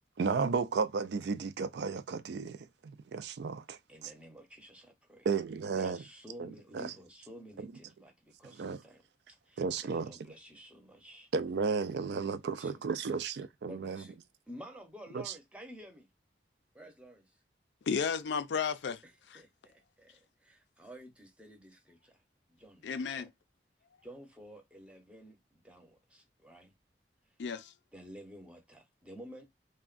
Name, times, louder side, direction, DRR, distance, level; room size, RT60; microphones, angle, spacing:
voice 1, 0.2-4.1 5.2-6.0 6.4-6.9 7.6-7.7 8.6-8.8 9.6-10.2 11.3-14.0 15.1-15.3, right 5 dB, 65° right, 0.3 m, -34 dB
voice 2, 3.9-5.3 5.7-9.0 9.5-11.3 12.5-13.1 13.7-14.2 14.5-16.1 16.7-17.4 19.0-22.2 22.5-22.9 23.1-23.3 24.0-26.7 27.9-29.4, equal, 5° right, 0.6 m, -52 dB
voice 3, 17.9-19.0 19.3-19.4 22.8-23.3 27.4-27.7, left 6 dB, 80° left, 0.4 m, -33 dB
3.4 x 2.2 x 2.4 m
head